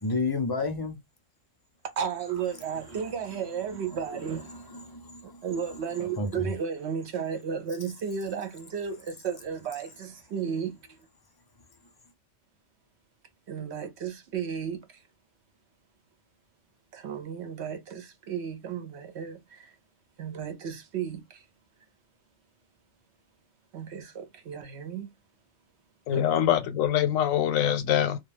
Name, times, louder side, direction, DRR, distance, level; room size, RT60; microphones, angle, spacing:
voice 1, 0.0-1.0 4.5-5.4 6.1-6.5, left 3 dB, 30° left, 0.4 m, -31 dB
voice 2, 2.0-4.8 5.2-10.8 13.5-15.0 16.9-19.7 20.2-21.5 23.7-25.1 26.1-26.4, right 7 dB, 65° right, 0.8 m, -34 dB
voice 3, 26.1-28.2, left 10 dB, 85° left, 1.0 m, -24 dB
2.3 x 2.2 x 3.2 m
omnidirectional pair, 1.4 m